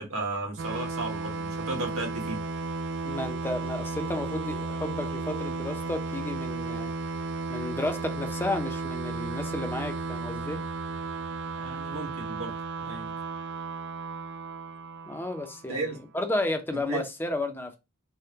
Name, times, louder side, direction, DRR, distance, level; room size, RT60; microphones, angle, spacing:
voice 1, 0.0-2.4 11.6-12.5 12.8-13.1 15.7-16.0 16.9-17.0, right 2 dB, 80° right, 1.3 m, -34 dB
sound 1, 0.6-16.0, right 3 dB, 60° right, 0.4 m, -34 dB
voice 2, 3.0-6.9 7.5-10.6 15.1-17.8, left 1 dB, 10° left, 0.5 m, -32 dB
3.5 x 2.2 x 2.7 m
head